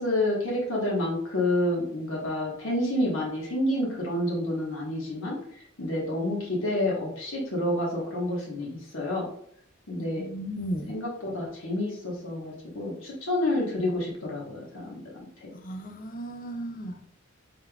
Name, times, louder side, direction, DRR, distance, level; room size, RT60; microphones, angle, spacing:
voice 1, 0.0-5.4 5.8-9.3 9.9-10.2 10.9-15.0 15.4-15.5, left 1 dB, 65° left, 1.2 m, -29 dB
voice 2, 10.2-10.9 15.5-17.1, right 1 dB, 40° left, 0.6 m, -35 dB
5.3 x 3.5 x 2.3 m
head